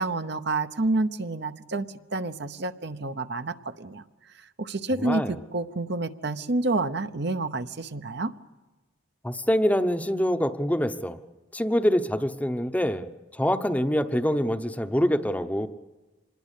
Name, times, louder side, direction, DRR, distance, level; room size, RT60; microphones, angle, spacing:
voice 1, 0.0-4.0 4.4-8.3, right 2 dB, 55° right, 9 dB, 0.9 m, -29 dB
voice 2, 5.0-5.4 9.2-11.2 11.5-13.1 13.3-15.7, equal, 5° left, 8 dB, 0.9 m, -25 dB
26.0 x 20.5 x 8.4 m, 1.2 s
head